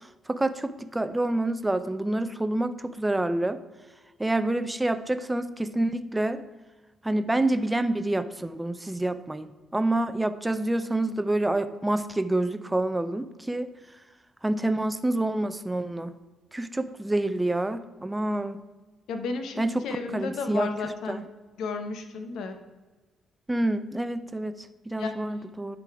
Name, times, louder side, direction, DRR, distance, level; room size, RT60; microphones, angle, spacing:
voice 1, 0.3-3.6 4.2-6.4 7.0-13.7 14.4-16.1 16.5-18.6 19.6-19.9 20.1-21.2 23.5-25.8, right 1 dB, 10° right, 12 dB, 0.5 m, -27 dB
voice 2, 19.1-21.2 21.6-22.5 25.0-25.1, left 4 dB, 80° left, 6 dB, 0.9 m, -33 dB
10.5 x 3.9 x 4.7 m, 1.2 s
cardioid pair, 90°, 0 cm